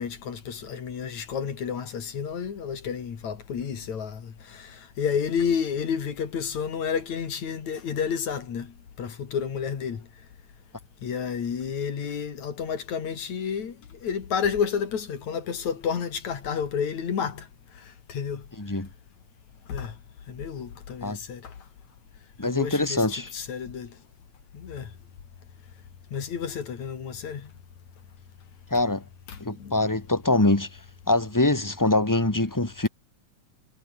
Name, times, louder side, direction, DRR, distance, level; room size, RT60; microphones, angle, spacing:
voice 1, 0.0-10.0 11.0-13.8 14.0-17.5 18.1-18.4 19.7-19.9 20.3-21.5 22.4-23.9 24.5-24.9 26.1-27.5 29.3-29.8, left 7 dB, 75° left, 4.0 m, -30 dB
voice 2, 18.6-18.9 21.0-21.2 22.4-23.3 28.7-29.0 29.4-30.7 31.1-32.9, left 2 dB, 10° left, 1.2 m, -24 dB
omnidirectional pair, 3.3 m